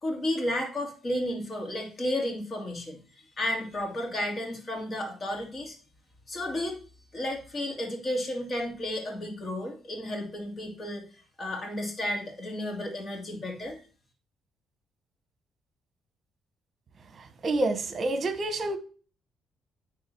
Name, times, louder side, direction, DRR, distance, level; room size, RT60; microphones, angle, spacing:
voice 1, 0.0-5.8 6.3-6.8 7.1-11.0 11.4-13.8, left 1 dB, 40° left, 2.5 m, -32 dB
voice 2, 17.4-18.8, right 2 dB, 45° right, 1.2 m, -27 dB
9.8 x 3.8 x 4.5 m
cardioid pair, 90°, 0 cm